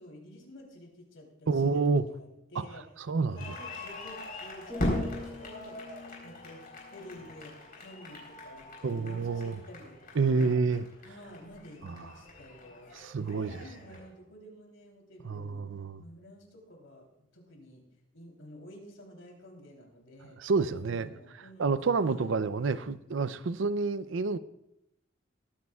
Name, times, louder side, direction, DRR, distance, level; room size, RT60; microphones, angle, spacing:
voice 1, 0.0-1.8 2.1-2.8 3.3-10.5 11.0-12.9 13.4-15.6 16.0-17.8 18.1-20.4 20.7-21.7 22.0-22.3, left 1 dB, 80° left, 3.4 m, -50 dB
voice 2, 1.5-2.0 2.6-2.7 3.1-3.6 4.9-5.0 8.8-9.6 10.2-10.8 12.9-13.7 15.2-16.0 20.4-21.1 21.6-24.4, right 4 dB, 70° right, 0.5 m, -28 dB
sound 1, 3.4-14.1, left 1 dB, 45° left, 3.8 m, -40 dB
sound 2, 4.7-8.6 9.1-9.4, left 3 dB, 10° right, 2.7 m, -46 dB
21.5 x 9.4 x 2.4 m
head